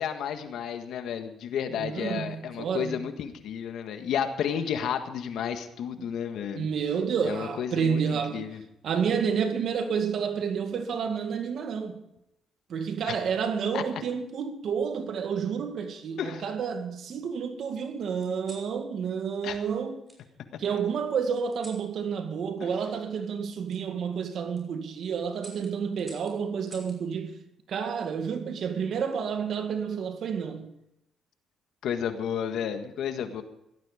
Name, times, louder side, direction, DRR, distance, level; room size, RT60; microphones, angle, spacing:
voice 1, 0.0-6.7 7.2-8.6 13.1-13.2 13.7-13.8 16.2-16.4 19.4-19.6 22.6-22.7 31.8-33.4, left 8 dB, 75° left, 1.6 m, -32 dB
voice 2, 1.7-3.1 6.0-6.1 6.6-8.5 8.8-12.0 12.7-20.0 20.6-27.3 27.7-30.7, right 6 dB, 65° right, 2.0 m, -30 dB
sound 1, 10.9-12.0 13.0-13.4 14.7-15.5 16.1-17.0 18.2-18.7 20.1-20.2 21.5-21.9 23.7-23.8 24.3-24.6 25.4-27.0 28.5-28.9, right 1 dB, 20° right, 6.0 m, -52 dB
17.0 x 12.5 x 5.1 m
cardioid pair, 90°, 0 cm